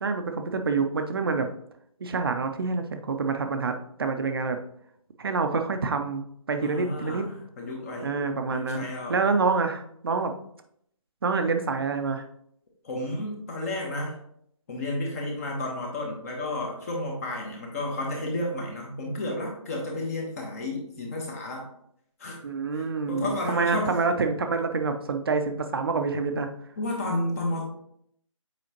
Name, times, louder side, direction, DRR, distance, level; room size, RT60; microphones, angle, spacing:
voice 1, 0.0-1.5 2.0-3.7 4.0-4.6 5.2-6.2 6.5-7.2 8.0-10.3 11.2-12.3 22.4-26.5, right 4 dB, 45° right, 6 dB, 0.7 m, -27 dB
voice 2, 6.6-8.1 8.5-9.2 12.8-14.1 14.7-21.6 22.2-22.4 22.7-23.9 26.8-27.6, left 1 dB, 25° left, 0 dB, 1.2 m, -32 dB
7.8 x 4.9 x 3.0 m, 0.71 s
figure-of-eight pair, 155°, 17 cm